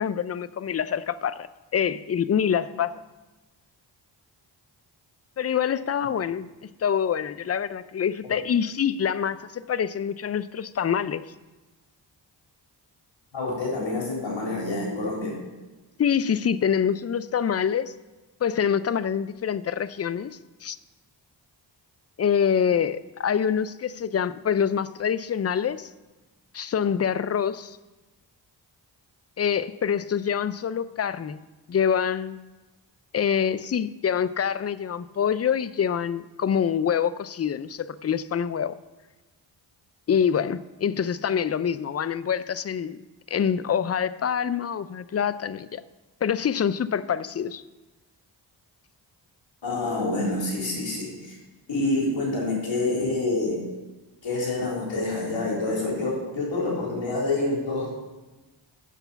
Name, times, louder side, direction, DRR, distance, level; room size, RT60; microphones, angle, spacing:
voice 1, 0.0-1.5 1.7-3.0 5.4-6.5 6.8-11.2 16.0-17.9 18.4-20.8 22.2-25.9 26.5-27.8 29.4-31.4 31.7-32.4 33.1-38.8 40.1-43.0 43.3-45.8 46.2-47.6, left 8 dB, 35° left, 0.5 m, -25 dB
voice 2, 13.3-15.4 49.6-51.4 51.7-53.7 54.2-57.9, left 2 dB, 75° left, 4.0 m, -27 dB
8.4 x 6.7 x 6.9 m
cardioid pair, 55°, 46 cm